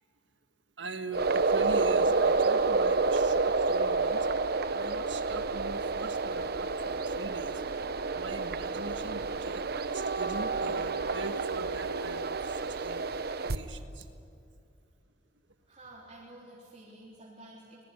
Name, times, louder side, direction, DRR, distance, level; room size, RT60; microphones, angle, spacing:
voice 1, 0.8-7.6 8.1-9.6 9.9-13.0 13.4-14.1, right 3 dB, 80° right, 8 dB, 1.7 m, -42 dB
sound 1, 1.1-13.6, right 3 dB, 60° right, 0.9 m, -29 dB
voice 2, 15.6-17.8, right 1 dB, 35° right, -6 dB, 3.9 m, -50 dB
24.0 x 21.0 x 10.0 m, 2.4 s
head